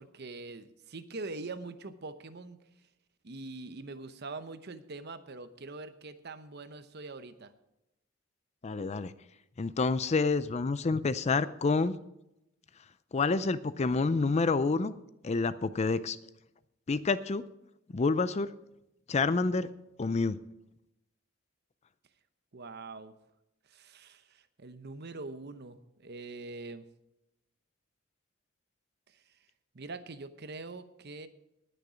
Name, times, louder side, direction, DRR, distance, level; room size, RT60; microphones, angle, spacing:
voice 1, 0.0-2.6 3.2-7.5 22.5-23.2 23.7-26.9 29.1-29.2 29.7-31.3, right 3 dB, 55° right, 11 dB, 0.9 m, -43 dB
voice 2, 8.6-9.1 9.6-11.9 13.1-15.0 15.2-16.2 16.9-17.4 17.9-18.5 19.1-19.7 20.0-20.4, left 4 dB, 30° left, 15 dB, 0.4 m, -28 dB
19.0 x 6.7 x 5.0 m, 0.87 s
head